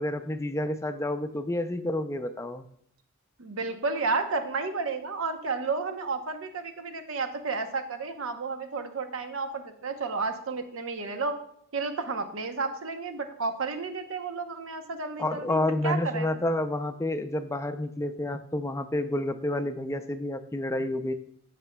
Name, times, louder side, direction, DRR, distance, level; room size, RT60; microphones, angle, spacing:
voice 1, 0.0-2.7 15.2-21.1, left 1 dB, 15° left, 9 dB, 0.4 m, -29 dB
voice 2, 3.4-11.4 11.7-15.6 15.8-16.4, right 4 dB, 70° right, 6 dB, 0.8 m, -32 dB
14.0 x 5.1 x 2.2 m, 0.68 s
head